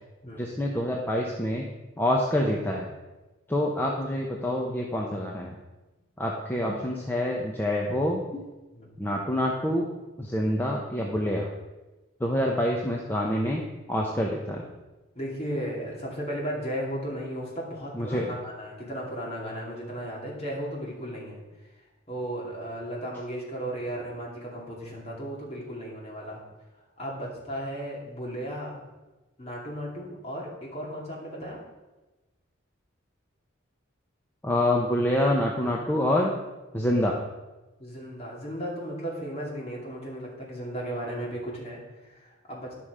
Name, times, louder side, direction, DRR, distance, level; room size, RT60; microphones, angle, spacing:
voice 1, 0.4-1.7 2.0-2.9 3.5-5.6 6.2-8.4 9.0-9.9 10.2-11.5 12.2-13.6 13.9-14.7 17.9-18.3 34.4-36.3 36.7-37.2, left 1 dB, 10° left, -2 dB, 0.8 m, -26 dB
voice 2, 15.1-21.4 22.1-26.4 27.0-28.8 29.4-31.6 37.8-42.7, equal, 30° left, -4 dB, 2.5 m, -35 dB
11.0 x 5.9 x 4.9 m, 1.1 s
head